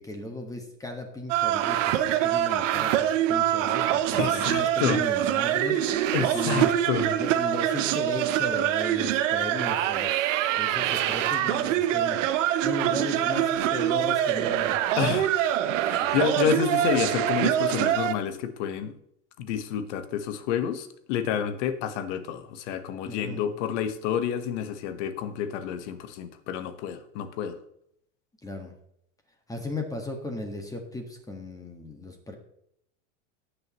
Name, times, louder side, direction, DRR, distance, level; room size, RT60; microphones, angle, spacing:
voice 1, 0.0-6.7 7.2-14.8 15.1-15.2 16.0-16.2 23.0-23.5 28.4-28.8 29.5-32.4, left 2 dB, 10° left, 3 dB, 1.6 m, -36 dB
sound 1, 1.3-18.1, right 11 dB, 85° right, 1.0 m, -25 dB
voice 2, 4.2-5.0 6.1-7.2 15.0-15.3 15.9-18.9 19.4-27.6, left 8 dB, 70° left, 10 dB, 1.4 m, -29 dB
18.5 x 6.6 x 3.1 m, 0.74 s
supercardioid pair, 135°, 37 cm